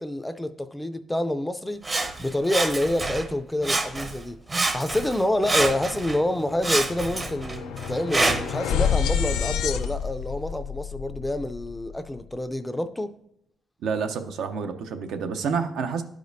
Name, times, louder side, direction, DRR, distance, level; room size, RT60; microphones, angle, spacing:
voice 1, 0.0-1.8 2.2-13.1, left 1 dB, 10° left, 0.4 m, -27 dB
Sawing, 1.8-3.3 3.6-4.2 4.5-6.2 6.6-8.6 9.3-9.4, right 2 dB, 25° right, 0.7 m, -27 dB
sound 1, 6.0-12.2, left 7 dB, 90° left, 0.3 m, -29 dB
voice 2, 13.8-16.0, right 5 dB, 80° right, 0.6 m, -28 dB
11.5 x 5.0 x 2.6 m
cardioid pair, 90°, 0 cm